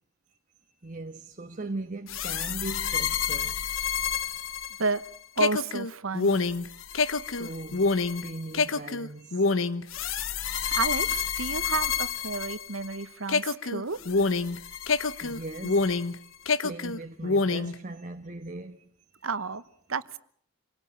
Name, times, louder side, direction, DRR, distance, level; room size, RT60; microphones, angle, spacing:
voice 1, 0.6-3.7 4.6-4.7 7.3-10.2 10.5-10.6 14.8-15.9 16.2-16.3 16.6-19.2, right 2 dB, 40° right, 1.3 m, -40 dB
sound 1, 2.1-13.0 13.3-16.2 16.5-17.8, left 4 dB, 70° left, 1.1 m, -27 dB
voice 2, 5.4-6.4 10.6-14.0 19.2-19.6 19.9-20.2, right 4 dB, 75° right, 1.1 m, -31 dB
27.0 x 18.0 x 8.7 m
head